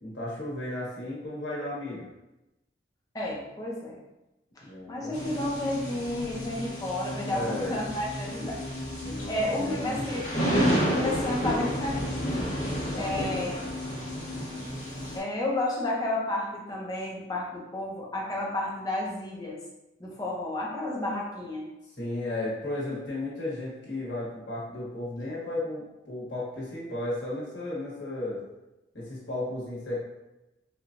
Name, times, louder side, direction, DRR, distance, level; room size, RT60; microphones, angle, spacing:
voice 1, 0.0-2.0 4.6-5.4 7.2-7.8 9.0-10.1 12.9-13.2 21.9-28.4 28.9-30.0, left 1 dB, 80° left, -6 dB, 1.3 m, -34 dB
voice 2, 3.1-4.0 4.6-8.6 9.3-10.3 10.8-12.5 12.9-13.5 15.1-19.6 20.0-21.7, left 1 dB, 20° left, -3 dB, 0.7 m, -31 dB
sound 1, 5.1-15.2, equal, 45° left, 1.3 m, -31 dB
4.5 x 2.3 x 2.5 m, 0.98 s
head